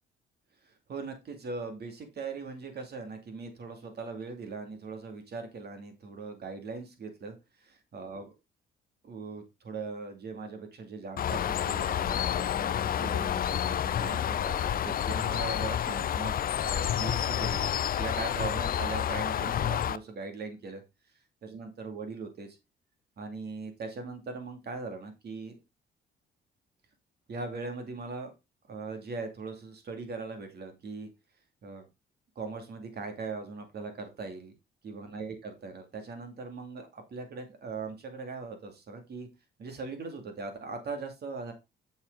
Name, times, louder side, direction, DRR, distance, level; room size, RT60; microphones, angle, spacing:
voice 1, 0.6-7.3 7.9-8.3 9.0-17.7 18.0-20.8 21.4-22.6 23.2-25.5 27.3-28.3 28.7-31.1 31.6-31.8 32.4-34.5 34.8-39.3 39.6-41.5, right 4 dB, 55° right, 5 dB, 2.5 m, -40 dB
Bird, 11.2-20.0, left 10 dB, 45° left, 0.5 m, -29 dB
7.2 x 6.7 x 3.9 m, 0.25 s
cardioid pair, 90°, 20 cm